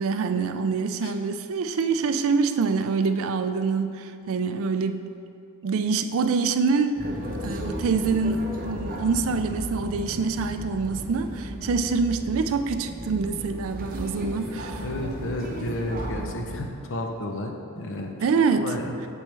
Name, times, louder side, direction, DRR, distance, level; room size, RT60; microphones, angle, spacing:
voice 1, 0.0-5.1 5.6-7.1 7.4-14.9 18.2-18.7, right 4 dB, 65° right, 8 dB, 0.4 m, -25 dB
sound 1, 7.0-16.7, equal, 40° right, 0.8 m, -35 dB
voice 2, 14.2-18.1 18.6-19.1, left 1 dB, 60° left, 3 dB, 0.7 m, -32 dB
7.6 x 6.2 x 3.4 m, 2.5 s
head